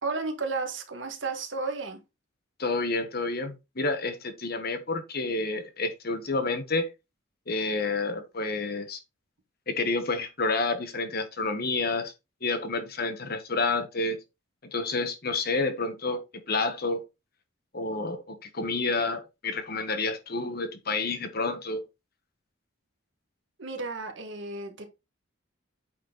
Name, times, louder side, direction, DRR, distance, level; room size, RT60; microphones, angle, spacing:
voice 1, 0.0-2.0 23.6-24.9, right 3 dB, 60° right, 1.9 m, -33 dB
voice 2, 2.6-6.9 7.5-9.0 9.7-12.1 12.4-14.2 14.7-16.2 16.5-17.0 17.7-21.8, left 3 dB, 50° left, 1.3 m, -29 dB
8.9 x 4.5 x 4.0 m
head